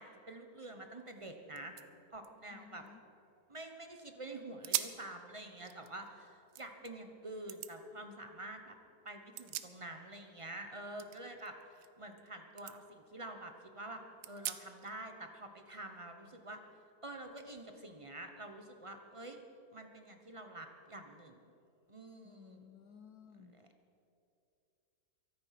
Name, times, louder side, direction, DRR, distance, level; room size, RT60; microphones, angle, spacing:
voice 1, 0.0-1.8 2.1-2.9 3.5-8.8 9.0-16.6 17.0-19.4 19.7-21.4 21.9-22.6 23.4-23.7, right 1 dB, 25° right, 5 dB, 0.8 m, -48 dB
sound 1, 1.2-1.3 1.5-3.7 4.1-4.2 4.6-5.1 5.5-6.9 7.5-7.7 9.1-10.2 10.5-12.3 12.6-12.8 13.3-13.4 14.2-14.9, right 12 dB, 75° right, 1.3 m, -43 dB
voice 2, 2.5-3.0 22.2-23.5, left 7 dB, 65° left, 9 dB, 1.3 m, -57 dB
23.5 x 8.8 x 5.9 m, 2.7 s
omnidirectional pair, 1.8 m